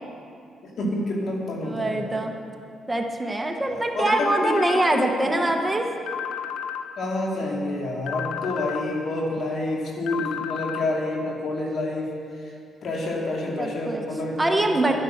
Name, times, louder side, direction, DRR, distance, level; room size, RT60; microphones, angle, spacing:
voice 1, 0.8-2.2 3.6-5.2 7.0-12.1 12.8-15.0, left 2 dB, 60° left, -2 dB, 3.0 m, -28 dB
voice 2, 1.6-2.3 2.9-5.9 13.6-14.0 14.4-14.9, right 2 dB, 15° right, 3 dB, 1.2 m, -23 dB
sound 1, 4.1-4.8 6.1-6.8 8.1-8.8 10.1-10.8, left 8 dB, 80° left, 0.9 m, -31 dB
12.0 x 11.5 x 6.5 m, 2.4 s
cardioid pair, 90°, 0 cm